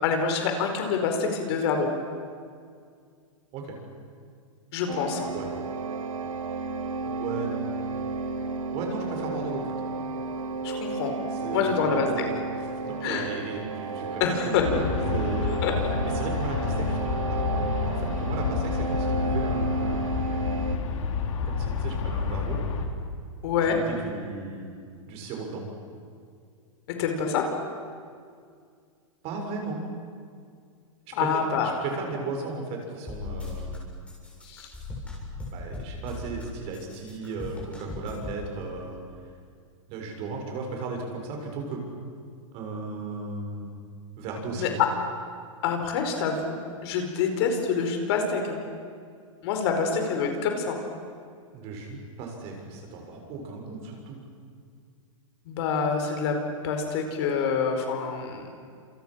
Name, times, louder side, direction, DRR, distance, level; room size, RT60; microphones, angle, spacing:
voice 1, 0.0-1.9 4.7-5.3 10.6-11.1 11.5-12.1 13.0-13.3 14.2-14.6 15.6-15.9 23.4-23.8 27.0-27.5 31.1-31.7 34.4-34.7 44.5-44.7 45.6-46.6 46.8-48.6 49.4-50.8 55.5-56.4 56.6-58.4, left 6 dB, 50° left, 4 dB, 4.8 m, -26 dB
sound 1, 4.9-20.8, right 4 dB, 85° right, 2.2 m, -32 dB
voice 2, 7.0-7.7 8.7-9.8 11.3-12.3 12.9-14.2 14.6-15.6 16.0-17.0 17.3-20.1 21.4-22.6 23.6-24.7 25.1-25.6 29.2-29.8 31.1-33.8 35.5-39.0 39.9-41.8 42.5-43.8 44.2-44.8 51.5-54.2, right 3 dB, 35° right, 2 dB, 6.6 m, -35 dB
Aircraft, 14.5-22.9, left 6 dB, 70° left, 3.7 m, -29 dB
sound 2, 33.1-33.8 34.1-36.4 36.7-38.4, left 3 dB, 5° left, 7.6 m, -37 dB
28.5 x 27.5 x 6.5 m, 2.2 s
hypercardioid pair, 140°, 17 cm